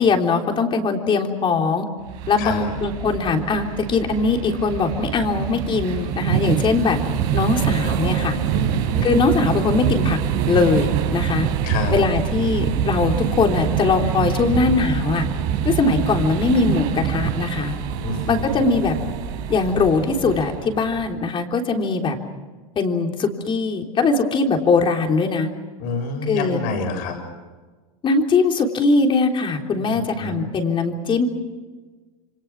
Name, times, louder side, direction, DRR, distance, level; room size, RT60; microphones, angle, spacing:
voice 1, 0.0-1.9 2.3-7.0 7.3-8.4 9.0-10.2 10.5-11.5 11.9-15.3 15.6-17.7 18.3-18.9 19.5-22.2 22.8-25.5 26.3-26.6 28.0-31.3, left 4 dB, 30° left, 3 dB, 3.6 m, -21 dB
sound 1, 2.1-21.1, right 9 dB, 60° right, 4.6 m, -25 dB
voice 2, 2.4-2.7 8.5-9.3 11.6-11.9 18.0-18.6 25.8-27.2 29.9-30.5, left 3 dB, 55° left, 4 dB, 7.4 m, -28 dB
28.0 x 24.5 x 6.1 m, 1.3 s
supercardioid pair, 125°, 18 cm